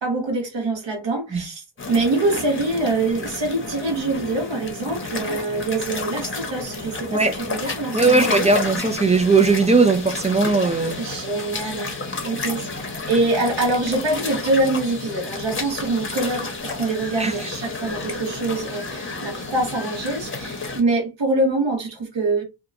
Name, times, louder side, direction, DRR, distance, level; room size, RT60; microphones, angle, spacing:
voice 1, 0.0-8.3 11.0-11.9 12.2-22.4, right 2 dB, 65° right, 1.1 m, -24 dB
sound 1, 1.8-20.8, left 3 dB, 25° left, 0.7 m, -31 dB
voice 2, 7.9-11.0 17.2-17.3, right 3 dB, 15° right, 0.3 m, -18 dB
2.8 x 2.1 x 2.4 m
wide cardioid pair, 95°, 47 cm